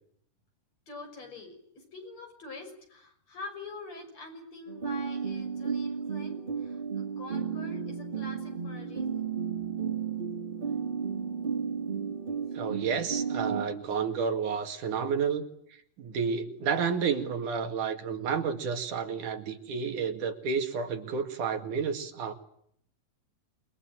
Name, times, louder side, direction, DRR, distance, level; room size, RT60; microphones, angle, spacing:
voice 1, 0.9-9.3 9.6-9.8, left 3 dB, 55° left, 5 dB, 7.4 m, -45 dB
sound 1, 4.7-13.7, right 6 dB, 25° right, 1.2 m, -33 dB
voice 2, 12.6-15.5 16.0-22.3, right 6 dB, 75° right, 6 dB, 3.7 m, -30 dB
28.0 x 22.5 x 9.1 m, 0.69 s
omnidirectional pair, 3.6 m